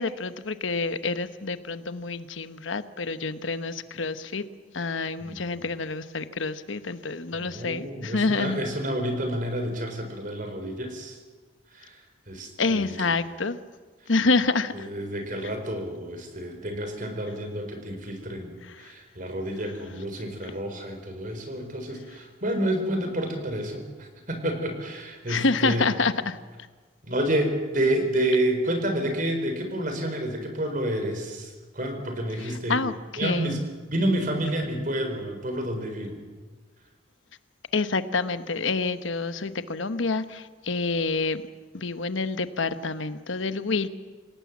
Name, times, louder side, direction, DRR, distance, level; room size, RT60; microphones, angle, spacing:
voice 1, 0.0-4.4 4.7-8.6 12.6-13.6 14.1-14.9 18.6-18.9 20.4-20.5 25.3-26.4 32.4-33.5 37.7-41.4 41.7-43.9, left 3 dB, 75° left, 11 dB, 1.1 m, -27 dB
voice 2, 5.2-5.6 7.3-11.2 11.7-13.1 14.0-14.1 14.7-25.9 27.0-32.8 33.2-33.6 33.9-36.2, right 1 dB, 40° right, 6 dB, 4.3 m, -29 dB
27.5 x 17.5 x 7.3 m, 1.4 s
head